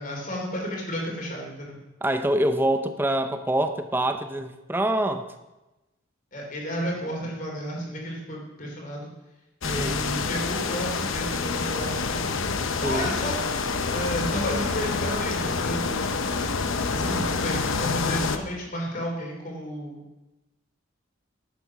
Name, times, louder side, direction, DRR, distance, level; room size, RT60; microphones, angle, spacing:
voice 1, 0.0-1.8 6.3-9.1 9.7-12.3 12.8-13.4 13.9-16.0 16.9-20.0, equal, 40° left, -1 dB, 3.5 m, -32 dB
voice 2, 2.0-5.3 9.6-10.0 12.8-13.2 17.0-17.1, right 1 dB, 10° right, 8 dB, 0.7 m, -25 dB
sound 1, 9.6-18.4, left 4 dB, 75° left, 0.9 m, -27 dB
11.5 x 8.5 x 6.0 m, 1.0 s
head